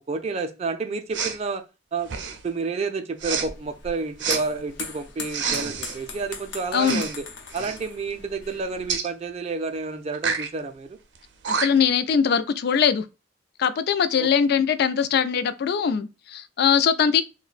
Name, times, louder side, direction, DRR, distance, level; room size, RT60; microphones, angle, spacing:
voice 1, 0.0-1.6 1.9-2.1 2.4-7.2 7.5-11.0 14.1-14.3, right 4 dB, 35° right, 0.4 m, -30 dB
Respiratory sounds, 1.1-1.4 2.0-2.5 3.2-3.5 4.2-4.4 5.3-6.0 6.8-7.2 7.5-7.8 8.9-9.1 10.1-10.5 11.2-11.3 11.4-11.9, right 6 dB, 85° right, 0.5 m, -28 dB
sound 1, 3.2-8.9, left 4 dB, 90° left, 0.7 m, -40 dB
voice 2, 6.7-7.0 11.5-13.1 13.6-17.2, left 7 dB, 60° left, 0.3 m, -21 dB
2.5 x 2.1 x 3.9 m
head